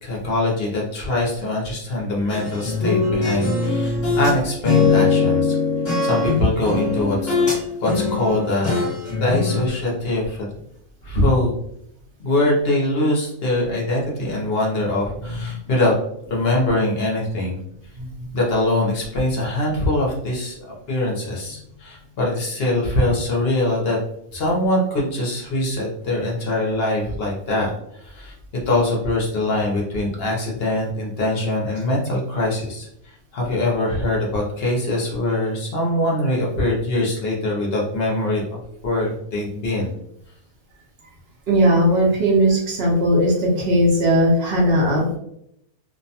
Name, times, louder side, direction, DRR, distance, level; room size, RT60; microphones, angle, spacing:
voice 1, 0.0-5.6 6.0-7.4 7.8-8.9 9.2-10.5 11.0-11.6 12.2-15.9 16.3-17.6 18.3-20.6 20.9-24.0 24.3-28.3 28.7-32.9 33.3-39.9, left 1 dB, 55° left, -2 dB, 0.7 m, -23 dB
sound 1, 2.3-4.4 4.6-7.6 7.8-9.7, left 4 dB, 35° left, 1.0 m, -21 dB
voice 2, 41.5-45.0, equal, 60° right, -2 dB, 0.7 m, -18 dB
2.6 x 2.1 x 2.7 m, 0.75 s
omnidirectional pair, 1.5 m